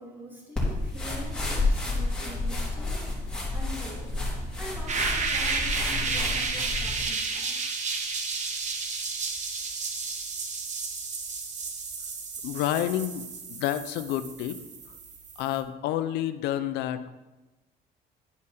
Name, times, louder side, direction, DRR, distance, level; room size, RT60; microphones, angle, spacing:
voice 1, 0.0-3.1 3.5-7.8, equal, 10° right, -4 dB, 2.8 m, -44 dB
sound 1, 0.6-7.1, left 2 dB, 5° left, 2.9 m, -30 dB
sound 2, 4.9-15.6, right 4 dB, 45° right, 1.1 m, -32 dB
voice 2, 12.4-14.6 15.4-17.1, left 12 dB, 85° left, 12 dB, 0.6 m, -29 dB
11.0 x 4.8 x 4.3 m, 1.1 s
cardioid pair, 110°, 17 cm